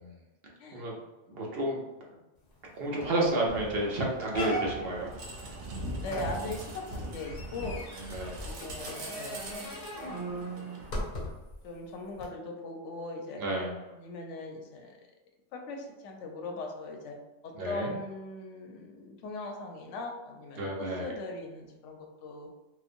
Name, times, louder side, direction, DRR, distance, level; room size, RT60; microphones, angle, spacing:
voice 1, 1.3-1.8 2.7-5.1 8.0-8.4 13.4-13.8 17.5-17.9 20.6-21.1, right 1 dB, 60° right, -2 dB, 0.8 m, -31 dB
sound 1, 2.6-2.7 3.0-3.3 3.7-3.8 4.3-5.0 6.1-11.5 12.2-12.3, right 1 dB, 50° left, 0.7 m, -38 dB
sound 2, 3.5-10.9, right 1 dB, 90° right, 0.9 m, -41 dB
voice 2, 6.0-7.8 8.4-9.4 10.1-10.2 11.6-13.4 13.9-14.9 15.5-17.2 17.4-22.5, left 2 dB, 85° left, 2 dB, 0.9 m, -40 dB
2.9 x 2.2 x 2.5 m, 1.0 s
omnidirectional pair, 1.2 m